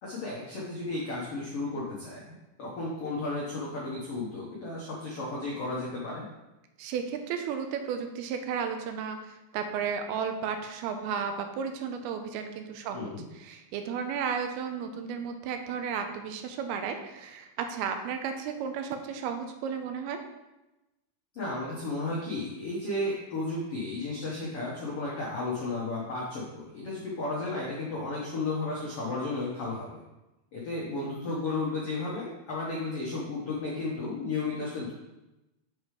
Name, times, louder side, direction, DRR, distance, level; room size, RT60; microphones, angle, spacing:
voice 1, 0.0-6.2 12.9-13.2 21.3-30.0 30.5-34.9, left 2 dB, 80° left, -5 dB, 1.3 m, -33 dB
voice 2, 6.8-13.1 13.4-20.2, right 6 dB, 85° right, 6 dB, 2.5 m, -33 dB
7.1 x 4.9 x 5.0 m, 1.0 s
omnidirectional pair, 4.7 m